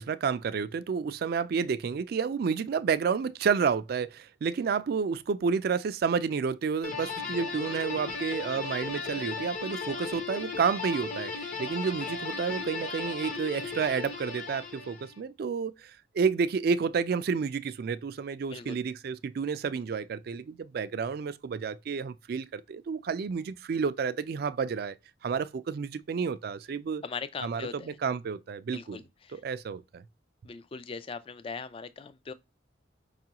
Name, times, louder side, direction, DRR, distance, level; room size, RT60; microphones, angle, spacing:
voice 1, 0.0-25.0 25.2-27.0 27.4-27.7 28.0-29.0 29.3-30.0, right 6 dB, 55° right, 0.3 m, -30 dB
sound 1, 6.8-15.2, left 4 dB, 45° left, 0.8 m, -36 dB
voice 2, 27.0-28.0 28.7-29.4 30.4-32.3, left 5 dB, 30° left, 0.3 m, -40 dB
5.3 x 2.4 x 2.8 m
head